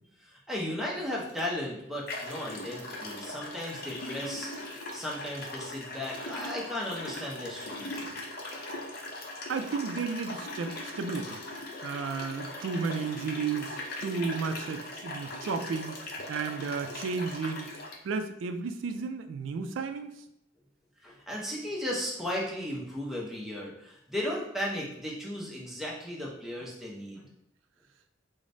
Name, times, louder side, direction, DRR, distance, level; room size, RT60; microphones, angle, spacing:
voice 1, 0.2-4.6 4.9-8.2 21.0-27.2, left 1 dB, ahead, -4 dB, 0.6 m, -35 dB
sound 1, 1.3-1.4 2.1-18.0, left 2 dB, 50° left, 0.5 m, -40 dB
voice 2, 9.5-11.4 11.8-16.0 16.3-17.7 18.0-20.1, right 5 dB, 85° right, 7 dB, 0.3 m, -33 dB
4.9 x 2.1 x 2.6 m, 0.81 s
head